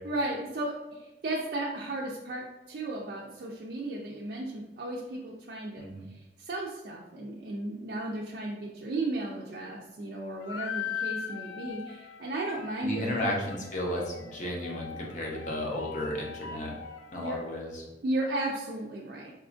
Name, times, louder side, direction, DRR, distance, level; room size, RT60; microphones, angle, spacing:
voice 1, 0.0-5.9 6.4-13.3 17.1-17.4 18.0-19.3, right 2 dB, 55° right, -3 dB, 0.4 m, -34 dB
sound 1, 10.4-17.5, left 7 dB, 85° left, 0.3 m, -40 dB
voice 2, 12.8-16.7 17.1-17.8, left 1 dB, 45° left, -1 dB, 0.7 m, -33 dB
4.2 x 2.4 x 2.4 m, 1.1 s
head